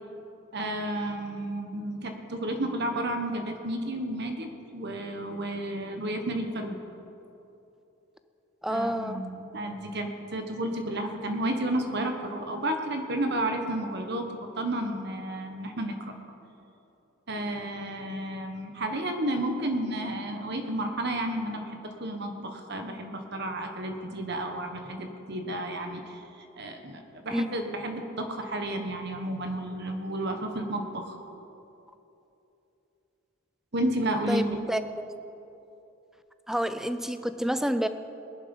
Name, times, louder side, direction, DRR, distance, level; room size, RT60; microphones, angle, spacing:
voice 1, 0.5-6.8 8.7-16.1 17.3-26.2 26.6-31.2 33.7-34.6, right 1 dB, 55° right, 5 dB, 1.3 m, -32 dB
voice 2, 8.6-9.3 27.3-27.5 34.3-35.0 36.5-37.9, equal, ahead, 11 dB, 0.4 m, -29 dB
19.5 x 11.0 x 5.4 m, 2.9 s
head